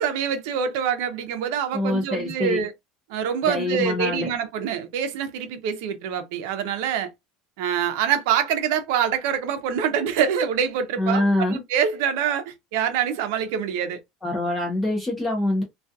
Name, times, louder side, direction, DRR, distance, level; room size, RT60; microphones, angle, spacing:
voice 1, 0.0-2.7 3.1-7.1 7.6-14.0, right 8 dB, 70° right, 0.6 m, -25 dB
voice 2, 1.7-2.6 3.4-4.3 11.0-11.6 14.2-15.6, left 1 dB, 10° left, 0.6 m, -24 dB
2.3 x 2.2 x 2.6 m
cardioid pair, 170°, 0 cm